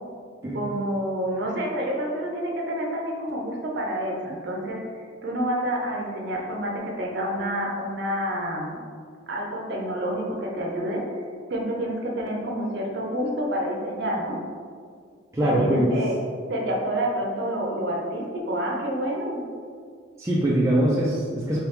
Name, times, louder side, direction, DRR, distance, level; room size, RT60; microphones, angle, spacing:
voice 1, 0.5-4.8 5.2-8.8 9.3-11.0 11.5-14.4 15.4-16.1 16.5-19.4, equal, 60° right, 0 dB, 0.6 m, -28 dB
voice 2, 15.3-15.9 20.2-21.6, right 1 dB, 15° right, -6 dB, 0.4 m, -22 dB
3.4 x 3.3 x 3.2 m, 2.1 s
head